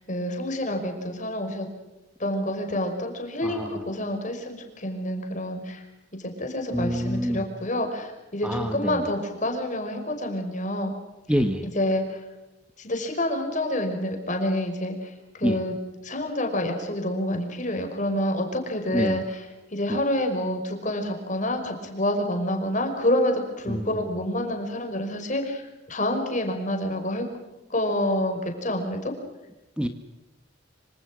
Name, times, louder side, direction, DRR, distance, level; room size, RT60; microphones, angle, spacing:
voice 1, 0.1-1.7 2.2-5.8 6.1-10.9 11.6-12.2 12.8-15.7 16.0-19.4 19.7-27.2 27.7-29.1, left 1 dB, 40° left, 4 dB, 5.6 m, -28 dB
voice 2, 3.4-3.8 6.7-7.4 8.4-9.0 11.3-11.7 15.4-15.6 18.9-19.2 19.9-20.0 23.7-24.0 29.8-29.9, equal, 5° right, 7 dB, 1.4 m, -26 dB
26.0 x 26.0 x 6.3 m, 1.0 s
head